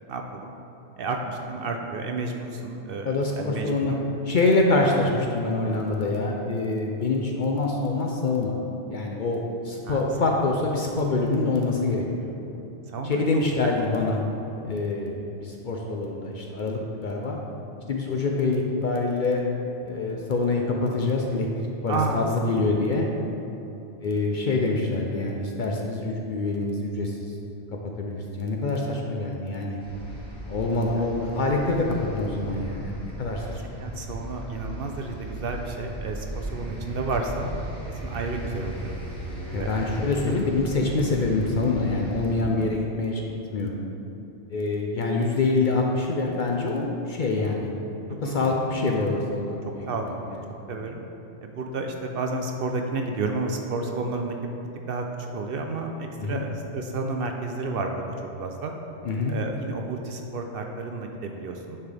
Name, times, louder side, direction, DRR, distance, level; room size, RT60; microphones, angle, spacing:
voice 1, 0.1-0.5 1.0-4.0 9.9-10.3 12.9-13.2 13.6-13.7 21.9-22.4 33.4-33.5 33.8-37.5 37.9-38.9 39.6-39.8 40.3-40.4 42.6-42.7 48.1-48.4 49.9-50.0 50.7-51.0 51.4-54.3 54.9-55.0 55.3-58.0 58.4-58.7 59.3-61.8, right 3 dB, 60° right, 3 dB, 0.7 m, -31 dB
voice 2, 3.0-3.9 4.3-8.6 8.9-12.3 13.0-14.2 14.6-17.4 17.9-19.4 19.8-23.1 24.0-27.3 28.0-29.8 30.5-33.8 39.5-43.2 43.5-43.8 44.5-47.7 48.2-50.1 56.2-56.3 59.0-59.3, left 3 dB, 55° left, 0 dB, 0.6 m, -25 dB
sound 1, 29.8-42.3, right 1 dB, 5° left, 1.2 m, -36 dB
9.7 x 4.4 x 3.4 m, 3.0 s
omnidirectional pair, 1.2 m